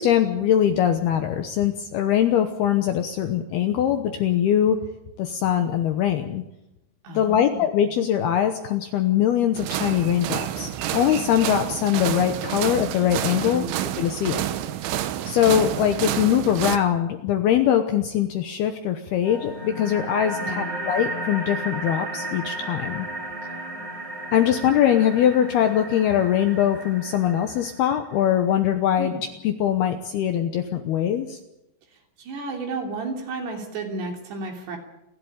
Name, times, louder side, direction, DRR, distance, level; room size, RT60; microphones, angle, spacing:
voice 1, 0.0-4.8 5.2-6.4 7.1-13.6 14.0-14.4 15.3-23.1 24.3-29.1 29.4-31.4, left 10 dB, 75° left, 7 dB, 2.5 m, -22 dB
voice 2, 7.0-7.7 13.4-13.8 20.4-20.8 29.0-29.2 31.9-34.8, right 3 dB, 60° right, 2 dB, 5.0 m, -33 dB
sound 1, 9.5-16.8, right 12 dB, 75° right, 3.3 m, -29 dB
sound 2, 19.2-28.2, right 1 dB, 20° right, 4.6 m, -34 dB
29.5 x 11.5 x 8.7 m, 0.90 s
omnidirectional pair, 5.6 m